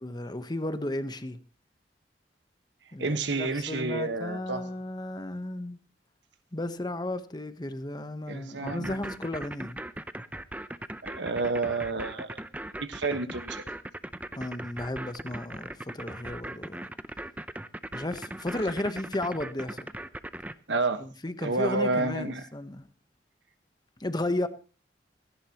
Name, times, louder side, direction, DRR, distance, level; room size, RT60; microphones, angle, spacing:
voice 1, 0.0-1.4 2.9-5.8 6.5-9.8 14.3-16.9 17.9-19.9 21.0-22.8 24.0-24.5, left 1 dB, 25° left, 1.0 m, -34 dB
voice 2, 3.0-4.6 8.3-9.0 11.0-12.4 12.8-13.6 20.7-21.0 21.4-22.4, right 3 dB, 85° right, 1.4 m, -30 dB
sound 1, 8.7-20.5, right 1 dB, 10° right, 0.6 m, -39 dB
17.5 x 15.0 x 3.0 m
head